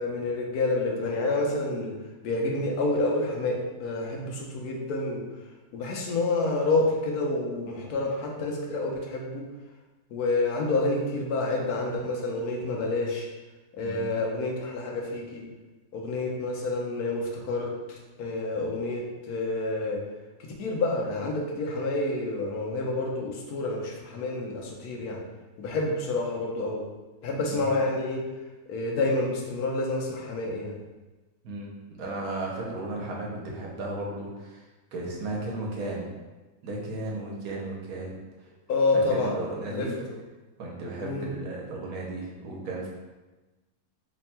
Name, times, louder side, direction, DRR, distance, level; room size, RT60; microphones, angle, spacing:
voice 1, 0.0-2.0 2.2-5.2 5.7-9.4 10.1-13.3 13.7-15.4 15.9-20.0 20.6-25.2 25.6-26.8 27.2-28.3 28.7-30.7 38.7-39.3 39.7-39.9 41.0-41.3, left 2 dB, 80° left, -1 dB, 1.2 m, -28 dB
voice 2, 32.0-34.6 34.9-36.1 36.6-38.2 38.9-39.9 40.6-42.9, right 2 dB, 75° right, -2 dB, 1.3 m, -35 dB
3.4 x 2.2 x 4.2 m, 1.2 s
omnidirectional pair, 1.6 m